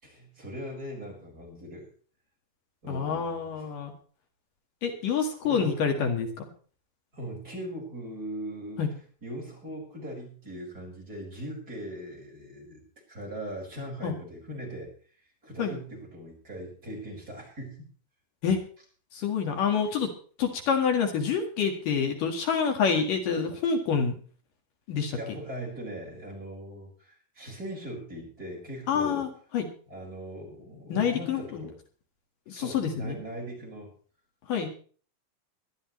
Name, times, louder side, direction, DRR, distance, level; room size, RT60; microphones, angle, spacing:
voice 1, 0.0-1.9 2.8-3.7 5.4-5.7 7.1-8.8 9.2-12.8 13.1-14.9 15.4-17.9 25.2-29.3 29.9-31.7 32.5-33.9, right 1 dB, 25° right, -1 dB, 5.4 m, -40 dB
voice 2, 2.9-3.9 4.8-6.5 8.8-8.9 14.0-14.1 15.6-15.7 18.4-18.6 19.1-20.1 20.4-24.1 24.9-25.2 28.9-29.3 29.5-29.7 30.9-31.6 32.5-33.2 34.5-34.7, left 6 dB, 65° left, 4 dB, 3.2 m, -27 dB
21.0 x 12.5 x 3.1 m, 0.42 s
omnidirectional pair, 4.2 m